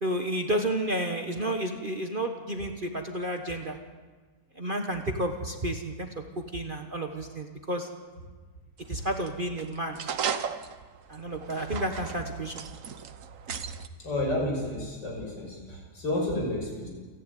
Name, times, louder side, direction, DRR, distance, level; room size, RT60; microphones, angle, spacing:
voice 1, 0.0-3.8 4.5-6.1 6.3-7.9 8.9-10.0 11.1-12.7, right 1 dB, 30° right, 4 dB, 1.4 m, -31 dB
sound 1, 8.8-13.9, right 7 dB, 55° right, 1.2 m, -36 dB
voice 2, 14.0-16.9, left 1 dB, 80° left, -1 dB, 6.5 m, -31 dB
29.0 x 11.0 x 9.4 m, 1.4 s
omnidirectional pair, 1.9 m